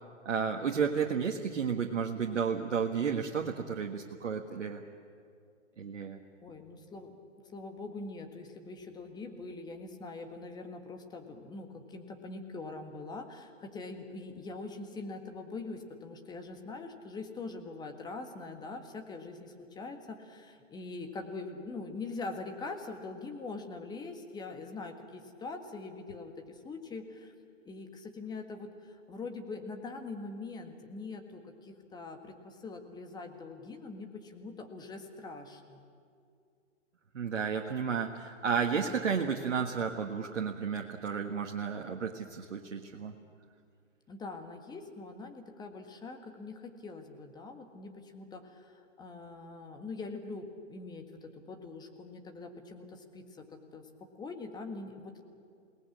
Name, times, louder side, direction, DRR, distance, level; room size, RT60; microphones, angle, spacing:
voice 1, 0.2-4.8 5.8-6.2 37.1-43.1, right 6 dB, 65° right, 2 dB, 1.7 m, -32 dB
voice 2, 6.4-7.2 7.5-27.3 27.7-35.8 44.1-53.9 54.2-55.2, left 3 dB, 10° left, 5 dB, 1.8 m, -43 dB
28.0 x 19.0 x 8.6 m, 2.3 s
figure-of-eight pair, 125°, 38 cm